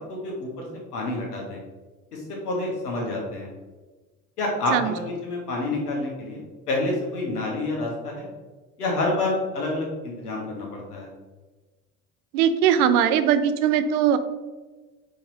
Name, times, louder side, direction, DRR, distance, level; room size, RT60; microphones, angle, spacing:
voice 1, 0.1-0.7 0.9-1.6 2.1-3.5 4.4-6.4 6.7-8.3 8.8-11.1, left 2 dB, 90° left, -1 dB, 1.2 m, -28 dB
voice 2, 12.3-14.2, right 9 dB, 75° right, 10 dB, 0.5 m, -20 dB
4.2 x 3.2 x 3.9 m, 1.3 s
hypercardioid pair, 60°, 45 cm